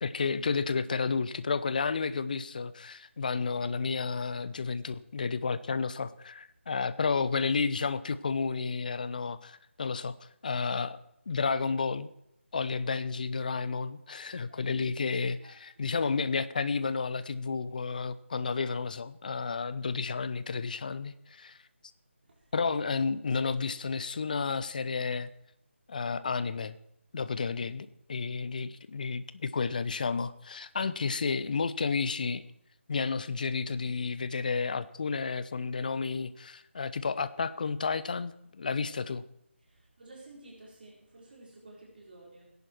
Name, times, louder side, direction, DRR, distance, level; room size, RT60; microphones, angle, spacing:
voice 1, 0.0-10.1 10.4-11.0 11.3-12.1 12.5-21.6 22.5-25.3 25.9-26.8 27.1-32.5 32.9-39.2, left 4 dB, 40° left, 15 dB, 0.7 m, -31 dB
voice 2, 39.7-42.4, right 2 dB, 45° right, -3 dB, 4.4 m, -52 dB
18.0 x 10.5 x 4.6 m, 0.77 s
figure-of-eight pair, 160°, 7 cm